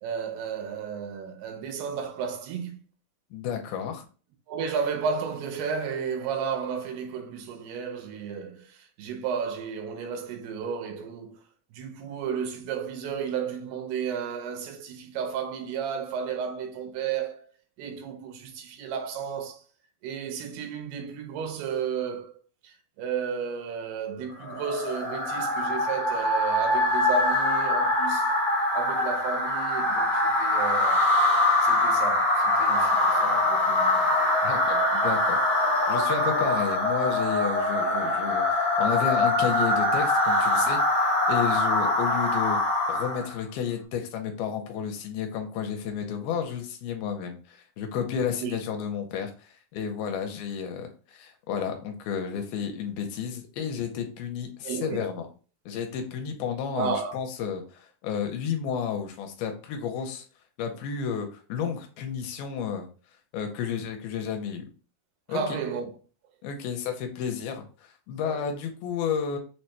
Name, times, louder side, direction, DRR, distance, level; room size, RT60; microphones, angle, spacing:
voice 1, 0.0-2.8 4.5-11.4 11.7-17.5 17.8-19.6 20.0-28.3 28.7-31.0 31.6-34.1 48.3-48.6 54.6-55.1 56.7-57.1 65.3-65.9 68.2-68.5, right 6 dB, 85° right, 2.8 m, -33 dB
voice 2, 3.3-4.1 34.4-42.6 42.9-55.2 55.7-60.2 60.6-62.9 63.3-64.7 65.3-65.4 66.4-69.4, left 7 dB, 85° left, 2.5 m, -32 dB
sound 1, 24.4-43.3, left 2 dB, 30° right, 0.4 m, -23 dB
6.5 x 2.2 x 2.9 m
omnidirectional pair, 4.4 m